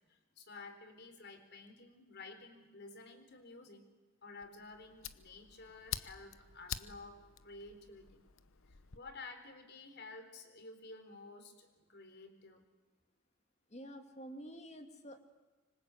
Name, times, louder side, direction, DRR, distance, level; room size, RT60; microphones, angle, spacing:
voice 1, 0.1-3.9 4.2-8.2 8.7-12.6, left 3 dB, 55° left, 7 dB, 4.0 m, -52 dB
Fire, 4.4-9.0, left 9 dB, 70° left, 1.0 m, -47 dB
voice 2, 13.7-15.2, equal, 30° left, 6 dB, 2.6 m, -49 dB
26.0 x 25.0 x 8.4 m, 1.2 s
head